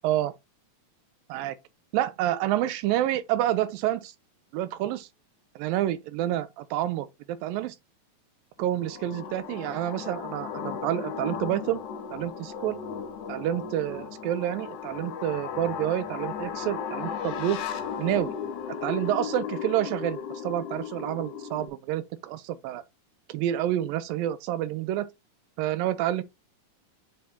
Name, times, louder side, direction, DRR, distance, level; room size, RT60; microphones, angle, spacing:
voice 1, 1.9-4.1 4.5-5.1 5.6-7.8 8.6-11.8 12.1-12.8 13.3-17.6 18.0-18.3 18.8-22.8 23.3-25.1 25.6-26.2, right 12 dB, 85° right, 2.3 m, -28 dB
sound 1, 8.6-21.7, left 7 dB, 70° left, 2.3 m, -36 dB
8.3 x 4.3 x 2.7 m
omnidirectional pair, 4.2 m